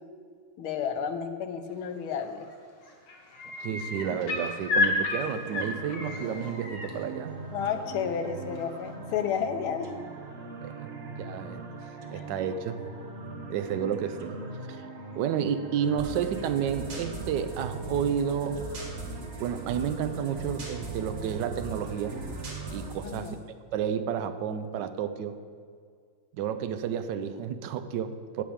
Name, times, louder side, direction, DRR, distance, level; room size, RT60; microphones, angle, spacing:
voice 1, 0.6-2.5 7.5-9.9 12.1-12.3 23.0-23.4, left 7 dB, 90° left, 7 dB, 1.7 m, -31 dB
sound 1, 2.2-2.5 2.8-6.9 8.5-8.6, left 3 dB, 60° left, 2.0 m, -31 dB
voice 2, 3.6-7.4 10.6-11.6 12.1-12.8 13.5-14.4 14.7-14.8 15.2-18.7 19.4-22.2 22.7-23.4 23.7-25.4 26.3-28.4, right 8 dB, 65° right, 9 dB, 1.2 m, -31 dB
sound 2, 5.5-22.9, right 3 dB, 45° right, 0.9 m, -41 dB
sound 3, 16.0-23.4, right 1 dB, 85° right, 3.2 m, -41 dB
12.0 x 5.2 x 8.7 m, 2.1 s
omnidirectional pair, 2.2 m